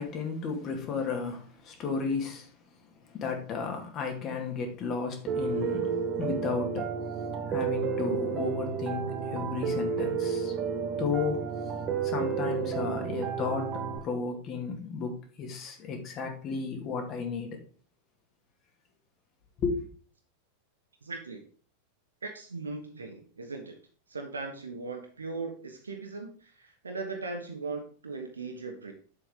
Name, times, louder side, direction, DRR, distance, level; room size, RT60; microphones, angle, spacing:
voice 1, 0.0-2.5 3.1-6.9 7.5-10.5 11.0-11.5 12.0-17.6 19.6-19.9, left 5 dB, 30° left, 2.3 m, -33 dB
Piano, 5.3-14.0, right 6 dB, 35° right, 1.4 m, -31 dB
voice 2, 21.0-21.4 22.2-23.8 24.1-28.9, right 3 dB, 75° right, 1.4 m, -38 dB
8.6 x 7.2 x 3.7 m
figure-of-eight pair, 90°, 0 cm